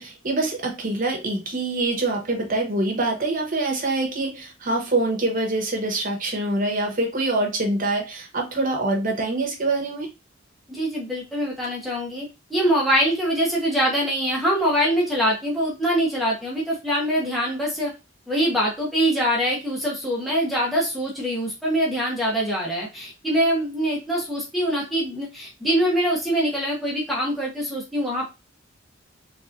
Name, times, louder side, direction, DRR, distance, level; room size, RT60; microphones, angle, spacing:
voice 1, 0.0-10.1, right 2 dB, 45° right, 1.1 m, -25 dB
voice 2, 10.7-17.9 18.3-28.3, equal, ahead, 1.1 m, -24 dB
3.4 x 3.1 x 2.6 m
head